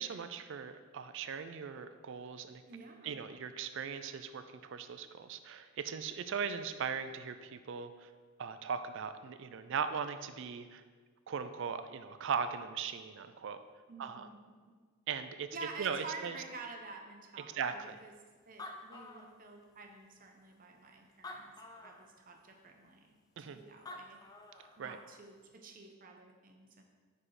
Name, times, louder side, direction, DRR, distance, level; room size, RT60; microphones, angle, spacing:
voice 1, 0.0-2.6 3.0-8.1 8.4-10.8 11.3-13.6 14.0-14.3 15.1-15.5 15.8-16.3 17.5-18.0 23.4-23.6 24.8-25.0, right 6 dB, 60° right, 10 dB, 0.4 m, -39 dB
voice 2, 2.7-3.3 13.9-14.7 15.5-18.1 18.5-24.2 24.8-26.8, right 3 dB, 40° right, 3 dB, 0.8 m, -49 dB
Animal, 18.2-18.3 18.4-19.8 20.5-20.6 21.1-22.1 23.6-23.7 23.9-24.8, left 2 dB, 20° left, 0.5 m, -48 dB
5.6 x 5.0 x 4.8 m, 1.5 s
head